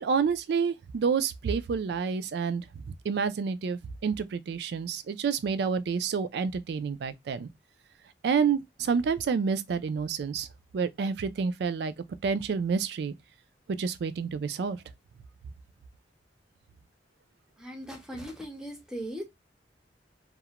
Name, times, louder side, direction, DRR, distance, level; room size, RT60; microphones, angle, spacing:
voice 1, 0.0-7.5 8.2-10.5 10.7-11.9 12.2-13.1 13.8-14.8, right 5 dB, 65° right, 0.3 m, -29 dB
voice 2, 17.6-19.2, equal, 5° right, 0.6 m, -38 dB
2.4 x 2.1 x 2.8 m
head